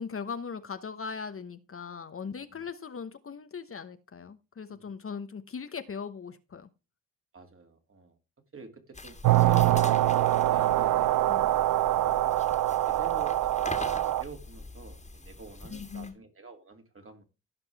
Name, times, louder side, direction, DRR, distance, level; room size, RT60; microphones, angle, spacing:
voice 1, 0.0-6.7 11.3-11.5 15.7-16.1, left 6 dB, 35° left, 1.1 m, -39 dB
voice 2, 2.2-2.6 4.7-4.8 7.3-8.2 8.5-9.2 9.5-11.1 11.9-12.2 12.8-17.2, right 4 dB, 35° right, 2.7 m, -47 dB
sound 1, 8.9-16.1, left 2 dB, 20° left, 2.1 m, -43 dB
sound 2, 9.2-14.2, right 14 dB, 60° right, 0.7 m, -24 dB
16.0 x 5.3 x 3.4 m
supercardioid pair, 65°, 37 cm